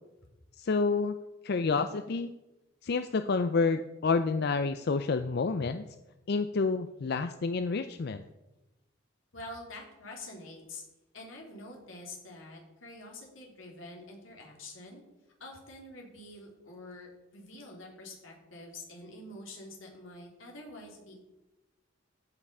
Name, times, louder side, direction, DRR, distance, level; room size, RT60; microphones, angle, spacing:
voice 1, 0.6-1.2 1.4-2.3 2.8-5.8 6.3-8.2, left 4 dB, 55° left, 10 dB, 0.4 m, -29 dB
voice 2, 9.3-10.8 11.1-15.0 15.4-21.2, left 2 dB, 90° left, -1 dB, 3.3 m, -46 dB
14.5 x 5.8 x 5.4 m, 1.0 s
head